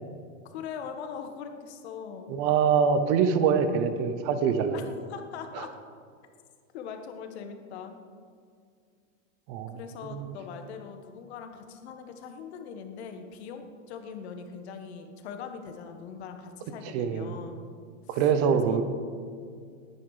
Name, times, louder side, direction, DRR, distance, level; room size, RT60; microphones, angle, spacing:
voice 1, 0.5-2.4 4.7-4.8 5.1-5.7 6.7-8.0 9.7-17.6 18.1-18.2 18.5-18.8, left 6 dB, 50° left, 6 dB, 1.5 m, -41 dB
voice 2, 2.3-4.8 5.5-5.7 9.5-9.8 10.1-10.3 16.9-17.3 18.1-18.8, right 6 dB, 20° right, 10 dB, 0.5 m, -24 dB
19.5 x 9.7 x 4.9 m, 2.2 s
supercardioid pair, 170°, 41 cm